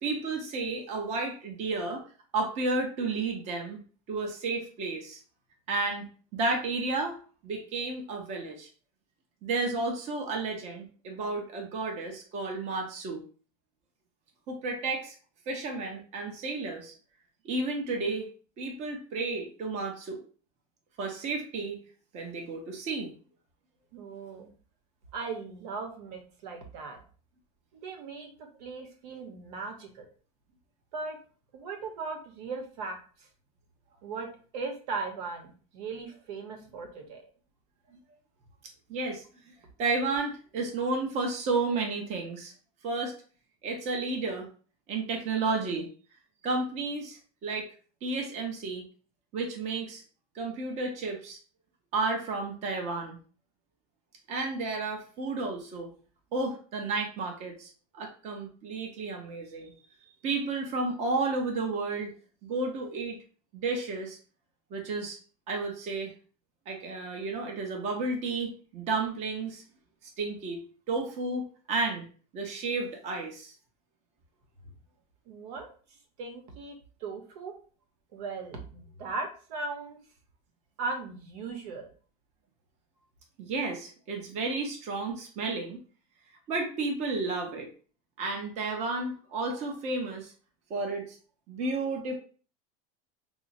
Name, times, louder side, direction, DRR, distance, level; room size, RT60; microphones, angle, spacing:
voice 1, 0.0-2.0 2.3-3.8 4.1-5.2 5.7-6.0 6.3-7.2 7.4-8.7 9.4-13.2 14.5-15.2 15.5-16.9 17.4-18.3 18.6-20.2 21.0-21.8 22.1-23.1 38.9-39.5 39.8-42.5 42.8-43.1 43.6-44.5 44.9-45.9 46.4-47.7 48.0-48.8 49.3-50.0 50.3-51.4 51.9-53.2 54.3-55.9 56.3-59.7 60.2-62.1 62.4-63.2 63.5-64.2 64.7-65.2 65.5-66.1 66.7-69.6 70.2-70.6 70.9-72.1 72.3-73.5 83.4-85.8 86.5-87.7 88.2-90.3 90.7-91.2 91.5-92.1, right 3 dB, 35° right, 2 dB, 0.8 m, -32 dB
voice 2, 23.9-24.5 25.1-27.0 27.7-30.1 30.9-31.2 31.5-33.3 34.0-34.3 34.5-37.2 75.3-75.7 76.2-77.5 78.1-80.0 80.8-81.9, right 4 dB, 80° right, 3 dB, 1.1 m, -38 dB
5.4 x 2.0 x 2.6 m, 0.40 s
supercardioid pair, 150°, 20 cm